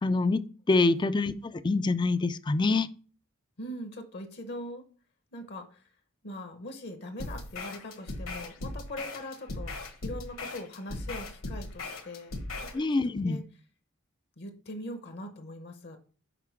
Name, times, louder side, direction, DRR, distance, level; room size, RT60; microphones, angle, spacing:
voice 1, 0.0-2.9 12.7-13.4, left 3 dB, 20° left, 0.3 m, -26 dB
voice 2, 3.6-4.8 5.3-5.9 6.2-13.4 14.4-16.0, left 1 dB, 55° left, 0.8 m, -41 dB
sound 1, 7.2-12.8, left 2 dB, 70° left, 1.3 m, -38 dB
6.0 x 5.0 x 4.5 m
head